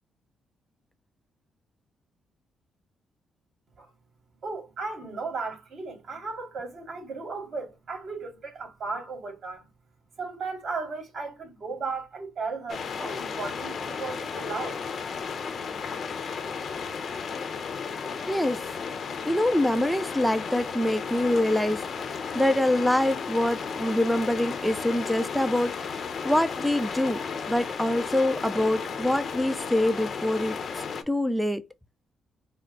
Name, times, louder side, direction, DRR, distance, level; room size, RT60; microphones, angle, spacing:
voice 1, 4.4-9.7 10.2-14.8, right 4 dB, 55° right, 2.4 m, -35 dB
sound 1, 12.7-31.0, left 5 dB, 50° left, 0.7 m, -34 dB
voice 2, 18.2-18.6 19.2-21.8 22.3-26.0 26.2-30.6 31.1-31.6, left 1 dB, 5° left, 0.4 m, -25 dB
4.4 x 2.0 x 3.8 m
cardioid pair, 90°, 0 cm